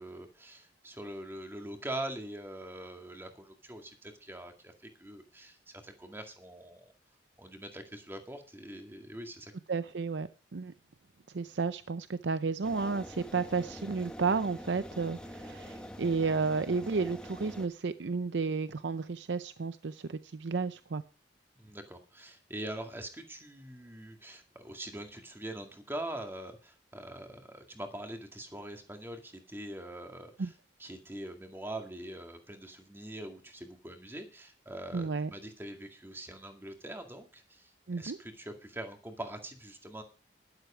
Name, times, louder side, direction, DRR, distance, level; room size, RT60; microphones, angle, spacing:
voice 1, 0.0-6.9 7.4-9.5 21.6-30.5 30.8-40.0, right 1 dB, 15° right, 5 dB, 2.0 m, -43 dB
voice 2, 9.7-10.7 11.3-21.0 30.4-30.5 34.9-35.3 37.9-38.2, right 4 dB, 75° right, 13 dB, 0.6 m, -32 dB
sound 1, 12.6-17.7, equal, 5° left, 1.2 m, -45 dB
12.0 x 11.5 x 5.0 m, 0.35 s
head